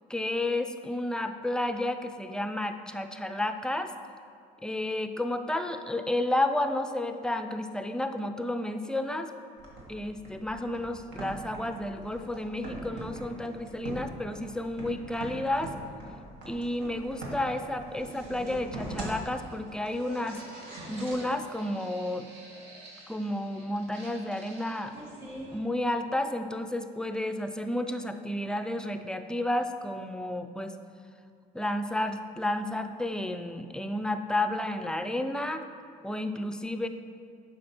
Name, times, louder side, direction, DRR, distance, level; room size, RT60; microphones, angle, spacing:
voice 1, 0.1-3.9 4.6-9.3 9.9-15.7 16.5-20.4 20.9-22.3 23.1-24.9 25.5-30.7 31.5-35.6 36.0-36.9, left 1 dB, 5° left, 8 dB, 0.4 m, -31 dB
sound 1, 9.6-25.6, right 1 dB, 90° right, 1.6 m, -43 dB
7.5 x 5.7 x 4.3 m, 2.3 s
cardioid pair, 110°, 17 cm